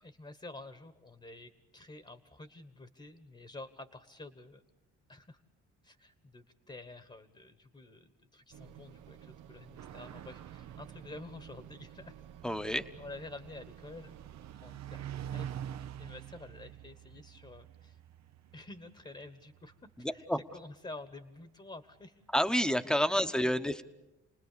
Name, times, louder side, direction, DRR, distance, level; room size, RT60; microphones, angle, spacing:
voice 1, 0.0-4.6 5.1-5.4 5.8-12.1 12.6-14.2 14.5-18.0 18.5-22.2 22.8-23.6, left 2 dB, 20° left, 10 dB, 1.4 m, -49 dB
sound 1, 8.5-14.5, right 10 dB, 85° right, 1.0 m, -53 dB
sound 2, 9.8-20.7, right 10 dB, 60° right, 0.8 m, -47 dB
voice 2, 12.4-12.9 20.0-20.4 22.3-23.8, equal, ahead, 10 dB, 1.1 m, -29 dB
29.0 x 20.0 x 6.9 m, 0.97 s
cardioid pair, 90°, 30 cm